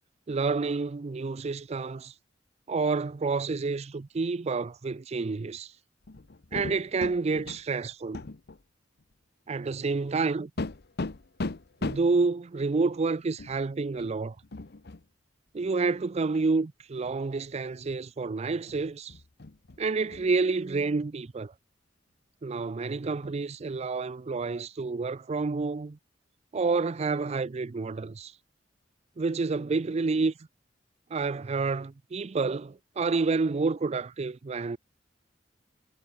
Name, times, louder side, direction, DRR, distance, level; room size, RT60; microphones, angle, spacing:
voice 1, 0.3-2.1 2.7-5.7 6.5-8.2 9.5-10.5 11.8-14.4 15.5-19.1 19.8-21.5 22.4-26.0 26.5-28.3 29.2-30.3 31.1-34.8, right 4 dB, 35° right, 0.4 m, -29 dB
sound 1, 6.0-7.6 8.1-8.6 9.0-9.1 10.6-12.2 13.4-13.6 13.9-14.1 14.4-15.0 16.3-16.4 17.0-17.5 17.8-18.3 18.7-20.3 23.2-23.3, left 2 dB, 60° left, 0.9 m, -38 dB
head